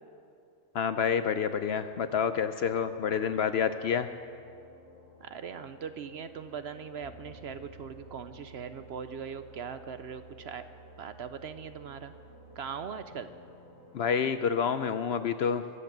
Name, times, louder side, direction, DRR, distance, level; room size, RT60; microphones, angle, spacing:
voice 1, 0.7-4.1 13.9-15.6, left 7 dB, 65° left, 10 dB, 0.7 m, -28 dB
sound 1, 1.8-14.7, right 1 dB, 85° left, 3.7 m, -54 dB
voice 2, 5.2-10.7 11.0-12.1 12.5-13.3, right 6 dB, 60° right, 10 dB, 0.8 m, -40 dB
23.5 x 8.1 x 7.3 m, 2.5 s
omnidirectional pair, 1.4 m